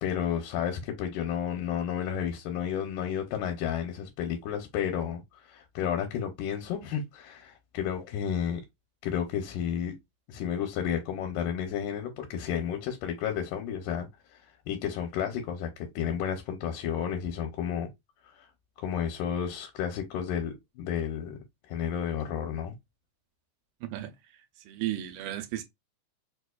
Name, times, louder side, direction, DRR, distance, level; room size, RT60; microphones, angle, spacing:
voice 1, 0.0-8.6 9.0-9.9 10.3-14.4 14.7-17.9 18.4-18.5 18.8-21.4 21.7-22.8, left 8 dB, 85° left, 2.1 m, -32 dB
voice 2, 24.7-25.6, right 13 dB, 85° right, 2.1 m, -33 dB
4.8 x 2.3 x 2.2 m
omnidirectional pair, 3.6 m